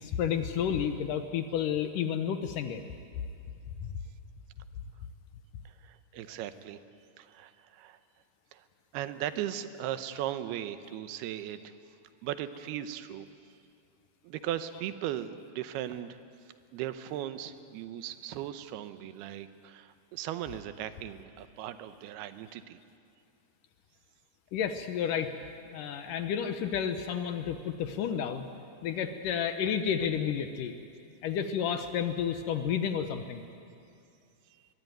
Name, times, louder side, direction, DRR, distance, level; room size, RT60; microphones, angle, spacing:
voice 1, 0.0-2.8 3.8-3.9 6.2-6.3 24.5-25.3 25.7-28.5 28.8-30.7 31.2-33.4, left 8 dB, 70° left, 8 dB, 2.2 m, -31 dB
voice 2, 5.7-6.8 7.2-8.0 8.5-8.7 8.9-11.7 12.2-13.3 14.2-16.2 16.7-22.8, right 11 dB, 85° right, 11 dB, 2.8 m, -38 dB
22.5 x 22.0 x 9.2 m, 2.5 s
omnidirectional pair, 4.5 m